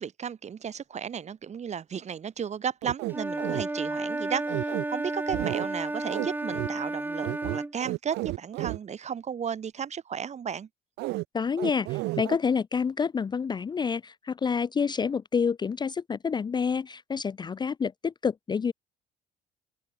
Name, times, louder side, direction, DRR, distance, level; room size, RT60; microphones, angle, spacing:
voice 1, 0.0-10.7, right 7 dB, 40° right, 4.8 m, -34 dB
sound 1, 2.8-3.6 4.5-4.8 5.3-5.7 6.1-6.3 6.5-6.7 7.2-8.8 11.0-11.2 11.6-12.4, right 21 dB, 85° right, 0.4 m, -32 dB
Wind instrument woodwind instrument, 3.1-7.7, right 2 dB, 10° right, 2.7 m, -32 dB
voice 2, 11.3-18.7, left 6 dB, 25° left, 0.5 m, -28 dB
cardioid pair, 110°, 17 cm